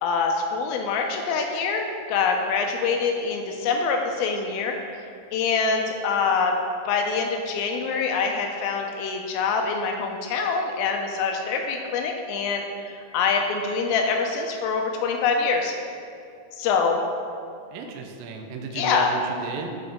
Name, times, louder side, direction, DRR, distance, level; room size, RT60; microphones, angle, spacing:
voice 1, 0.0-4.8 5.3-6.6 6.9-15.7 16.6-17.0 18.7-19.1, left 5 dB, 85° left, 2 dB, 2.1 m, -25 dB
voice 2, 17.7-19.8, right 4 dB, 90° right, 3 dB, 2.0 m, -34 dB
9.7 x 3.8 x 3.5 m, 2.4 s
omnidirectional pair, 4.7 m